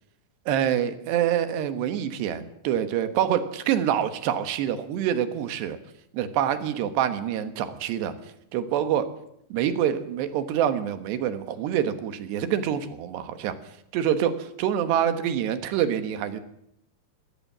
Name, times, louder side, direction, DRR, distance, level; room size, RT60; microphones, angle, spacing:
voice 1, 0.5-5.8 6.1-8.1 8.5-9.1 9.5-13.6 13.9-16.4, right 9 dB, 90° right, 10 dB, 3.6 m, -26 dB
22.0 x 17.5 x 7.4 m, 0.75 s
omnidirectional pair, 4.7 m